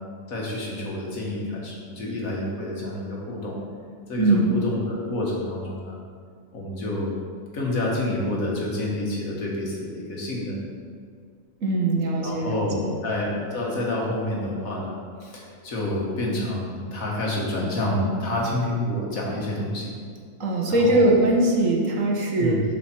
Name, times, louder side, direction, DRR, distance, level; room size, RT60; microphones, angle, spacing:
voice 1, 0.3-3.6 4.1-6.0 6.5-7.1 7.5-10.6 12.2-14.9 15.2-19.9 20.7-21.1 22.4-22.6, left 1 dB, 85° left, -3 dB, 2.0 m, -28 dB
voice 2, 4.2-4.5 11.6-12.6 12.8-12.9 20.4-22.6, right 2 dB, 70° right, -1 dB, 1.6 m, -21 dB
7.2 x 5.1 x 5.9 m, 2.1 s
omnidirectional pair, 1.4 m